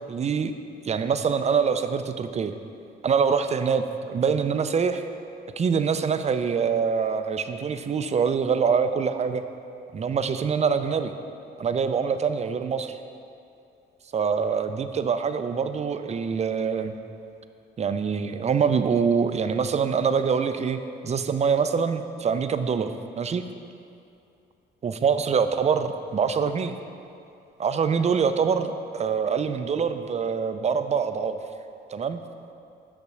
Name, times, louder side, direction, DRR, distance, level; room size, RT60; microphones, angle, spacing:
voice 1, 0.1-0.5 0.8-2.5 3.0-5.0 5.6-9.4 9.9-11.1 11.6-13.0 14.1-16.9 17.8-23.5 24.8-26.7 27.6-31.4 31.9-32.2, right 6 dB, 35° right, 9 dB, 0.4 m, -25 dB
5.9 x 5.4 x 6.3 m, 2.6 s
cardioid pair, 90°, 20 cm